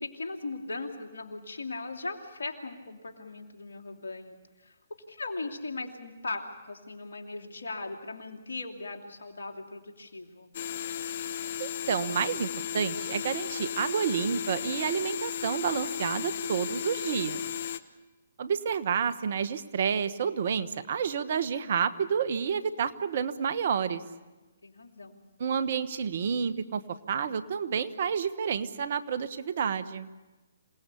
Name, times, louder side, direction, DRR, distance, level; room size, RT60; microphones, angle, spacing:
voice 1, 0.0-10.5 24.6-25.2, left 3 dB, 80° left, 3 dB, 3.0 m, -39 dB
sound 1, 10.5-17.8, left 9 dB, 55° left, 1.2 m, -35 dB
voice 2, 11.6-12.5 12.7-17.4 18.4-24.0 25.4-26.8 27.1-30.1, right 7 dB, 55° right, 13 dB, 1.3 m, -29 dB
27.0 x 18.5 x 8.5 m, 1.2 s
hypercardioid pair, 135°, 0 cm